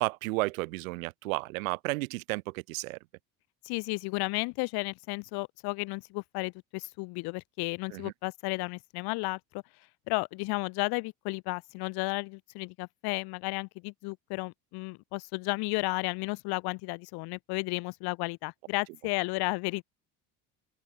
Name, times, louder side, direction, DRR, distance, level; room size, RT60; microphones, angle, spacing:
voice 1, 0.0-3.0 7.9-8.1, right 23 dB, 90° right, 2.0 m, -32 dB
voice 2, 3.6-9.6 10.1-19.8, left 26 dB, 70° left, 1.2 m, -33 dB
open air
supercardioid pair, 95°, 40 cm